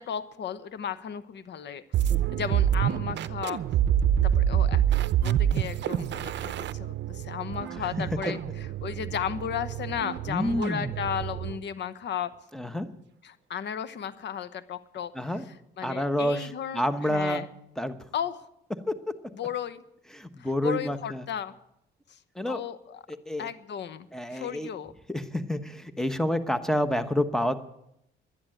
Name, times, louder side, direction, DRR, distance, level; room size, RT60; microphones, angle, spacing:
voice 1, 0.0-3.6 4.2-4.8 5.2-12.3 13.2-17.5 18.1-18.5 19.3-19.8 20.4-21.5 22.1-22.2 22.5-23.0 23.4-24.9, left 8 dB, 60° left, 14 dB, 1.0 m, -35 dB
sound 1, 1.9-11.6, right 10 dB, 65° right, 0.6 m, -27 dB
voice 2, 10.3-10.9 12.5-12.9 15.1-15.5 15.8-17.5 17.8-17.9 18.9-19.0 20.1-21.2 22.4-22.6 23.1-23.5 24.1-24.7 25.1-27.6, left 1 dB, ahead, 10 dB, 1.1 m, -28 dB
11.5 x 10.5 x 8.8 m, 0.79 s
cardioid pair, 90°, 20 cm